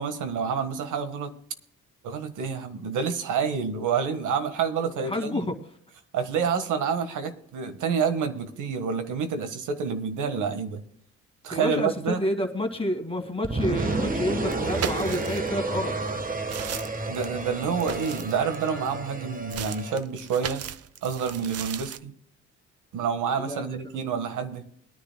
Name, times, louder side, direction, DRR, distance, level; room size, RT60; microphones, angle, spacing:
voice 1, 0.0-1.4 2.0-5.6 6.1-10.8 11.4-12.2 17.1-20.6 21.0-22.1 22.9-24.6, right 6 dB, 80° right, 8 dB, 1.5 m, -28 dB
voice 2, 5.0-5.5 11.5-15.9 23.4-23.9, left 1 dB, 20° left, 3 dB, 2.2 m, -29 dB
sound 1, 13.4-20.0, right 2 dB, 30° right, 1.2 m, -31 dB
sound 2, 14.5-15.6 16.1-18.9 19.5-22.0, right 9 dB, 55° right, 0.7 m, -36 dB
22.0 x 10.5 x 2.2 m, 0.67 s
cardioid pair, 90°, 30 cm